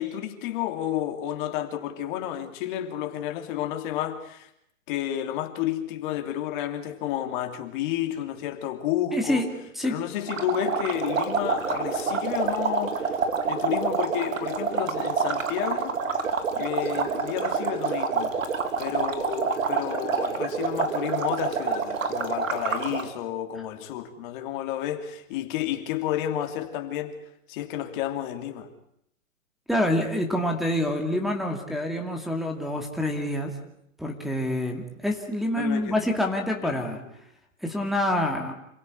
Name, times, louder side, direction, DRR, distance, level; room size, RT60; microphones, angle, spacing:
voice 1, 0.0-4.5 4.9-9.5 9.8-13.2 13.4-16.0 16.5-18.3 18.8-27.2 27.5-28.7 35.6-36.0 36.6-36.9, left 11 dB, 40° left, 3.1 m, -31 dB
voice 2, 9.1-9.5 9.8-10.0 29.7-33.5 34.0-37.0 37.6-38.5, left 1 dB, ahead, 2.5 m, -26 dB
sound 1, 10.3-23.1, right 5 dB, 75° right, 3.6 m, -27 dB
27.5 x 16.5 x 9.7 m
hypercardioid pair, 145°, 40 cm